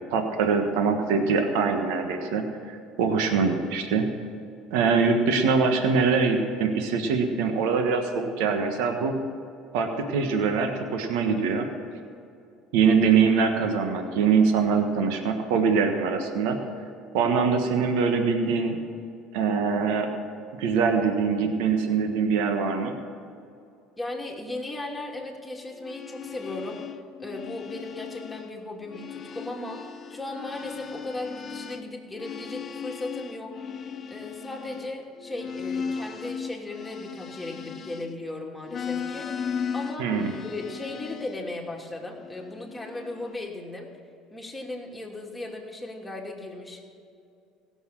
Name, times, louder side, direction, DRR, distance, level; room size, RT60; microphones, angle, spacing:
voice 1, 0.1-4.0 4.7-9.1 9.7-11.7 12.7-16.6 17.1-18.8 19.3-20.1 20.6-22.9 40.0-40.3, right 5 dB, 80° right, 5 dB, 1.4 m, -23 dB
voice 2, 24.0-26.8 27.2-29.8 30.1-33.5 34.1-39.3 39.7-40.1 40.4-43.9 44.3-46.8, left 2 dB, 10° left, -2 dB, 2.8 m, -36 dB
sound 1, 25.7-28.5 28.8-38.3 38.6-41.4 42.1-43.3, left 6 dB, 40° left, 1.1 m, -37 dB
16.5 x 7.1 x 7.6 m, 2.5 s
supercardioid pair, 85°, 0 cm